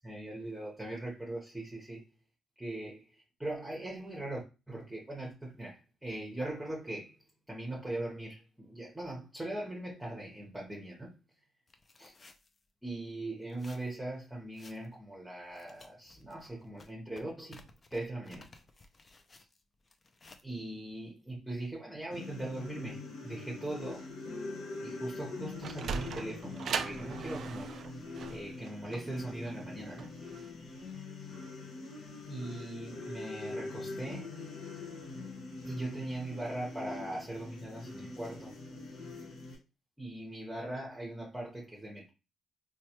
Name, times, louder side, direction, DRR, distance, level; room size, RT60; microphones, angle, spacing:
voice 1, 0.0-2.0 2.6-7.1 7.5-11.1 12.0-12.1 12.8-17.6 17.9-18.5 20.4-24.1 24.7-27.9 28.3-30.1 32.3-34.3 35.6-38.5 40.0-42.1, right 1 dB, 10° right, 0.9 m, -40 dB
sound 1, 11.7-12.6 13.4-14.0 14.5-15.0 15.4-20.4, left 3 dB, 35° left, 0.5 m, -57 dB
sound 2, 22.1-39.6, left 3 dB, 75° left, 1.1 m, -43 dB
Sliding door, 25.3-30.5, right 6 dB, 60° right, 0.3 m, -39 dB
3.0 x 2.2 x 2.9 m
cardioid pair, 90°, 0 cm